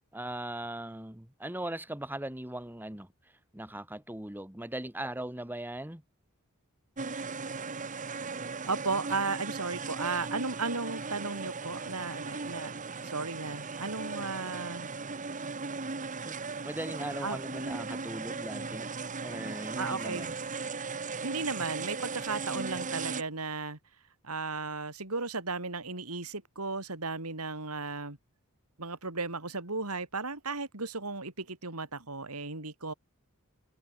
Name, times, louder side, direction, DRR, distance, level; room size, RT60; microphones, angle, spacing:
voice 1, 0.1-3.1 3.5-6.0 16.3-16.4 16.6-18.9 19.2-20.3, right 1 dB, 10° right, 2.7 m, -39 dB
sound 1, 7.0-23.2, right 4 dB, 35° right, 1.5 m, -37 dB
voice 2, 8.7-12.7 13.0-14.9 17.2-17.4 19.8-20.3 21.2-23.8 24.2-28.2 28.8-32.9, right 3 dB, 80° right, 4.1 m, -35 dB
head